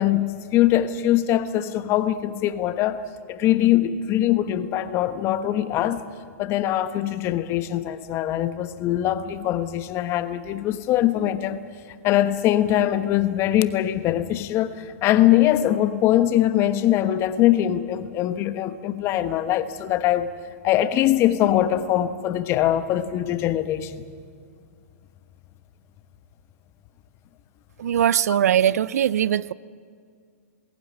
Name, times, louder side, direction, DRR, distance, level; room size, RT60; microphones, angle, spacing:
voice 1, 0.0-6.0 6.4-11.6 12.0-20.3 20.6-24.0 28.3-28.4, left 12 dB, 30° left, 1.2 m, -22 dB
voice 2, 27.8-29.5, right 10 dB, 70° right, 0.6 m, -21 dB
21.5 x 16.5 x 9.7 m
hypercardioid pair, 135°, 9 cm